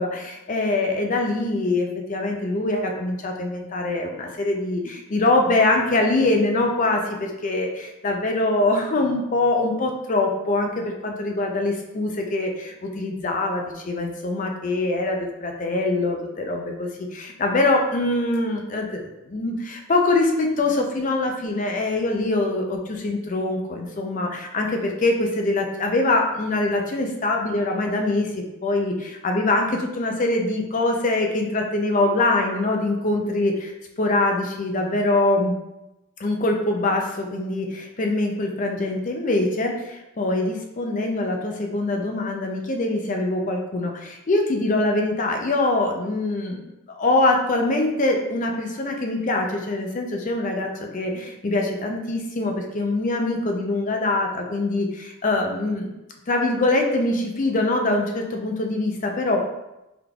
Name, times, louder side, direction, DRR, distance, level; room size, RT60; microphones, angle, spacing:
voice 1, 0.0-28.3 28.6-35.5 36.2-55.9 56.3-59.4, left 2 dB, 35° left, 2 dB, 0.4 m, -23 dB
3.7 x 3.4 x 2.3 m, 0.94 s
head